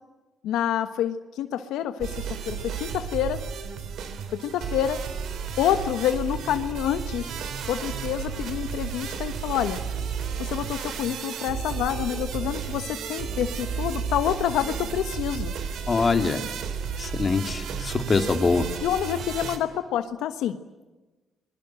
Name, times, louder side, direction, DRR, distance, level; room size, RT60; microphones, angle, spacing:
voice 1, 0.4-3.4 4.4-5.0 5.6-7.3 7.7-9.8 10.4-15.5 18.8-20.6, left 10 dB, 90° left, 9 dB, 1.2 m, -27 dB
sound 1, 2.0-19.6, right 6 dB, 75° right, 3.4 m, -33 dB
voice 2, 15.9-16.5 17.0-18.7, left 4 dB, 35° left, 6 dB, 2.7 m, -24 dB
27.5 x 22.0 x 7.7 m, 1.2 s
cardioid pair, 90°, 0 cm